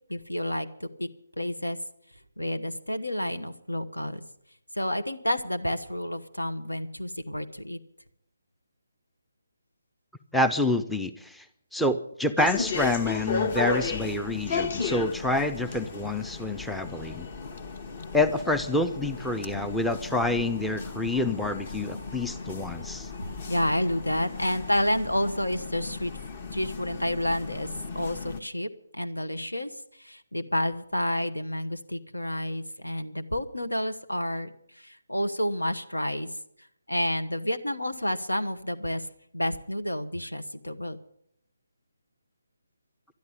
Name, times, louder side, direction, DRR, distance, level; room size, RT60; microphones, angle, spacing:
voice 1, 0.1-1.1 1.4-1.8 2.4-4.2 4.7-7.8 23.5-26.1 26.5-27.7 27.9-29.7 30.0-34.5 34.8-36.3 36.9-39.1 39.3-41.0, left 1 dB, 85° left, 9 dB, 1.2 m, -30 dB
voice 2, 10.3-11.5 11.7-17.3 18.1-23.1, left 2 dB, ahead, 9 dB, 0.5 m, -27 dB
sound 1, 12.4-28.4, left 4 dB, 35° left, 1.1 m, -35 dB
12.0 x 10.5 x 8.7 m, 0.73 s
figure-of-eight pair, 145°, 0 cm